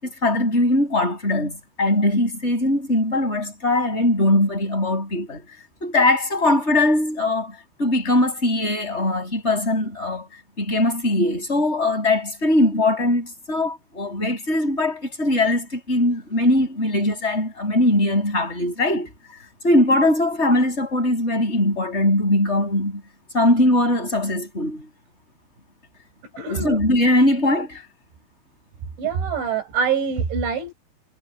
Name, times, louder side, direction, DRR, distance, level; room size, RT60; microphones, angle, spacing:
voice 1, 0.0-5.4 5.8-10.3 10.6-19.1 19.6-23.0 23.3-24.9 26.5-27.9, left 1 dB, 15° left, 7.6 m, -21 dB
voice 2, 26.4-26.8 29.0-30.7, right 6 dB, 85° right, 7.5 m, -24 dB
omnidirectional pair, 5.2 m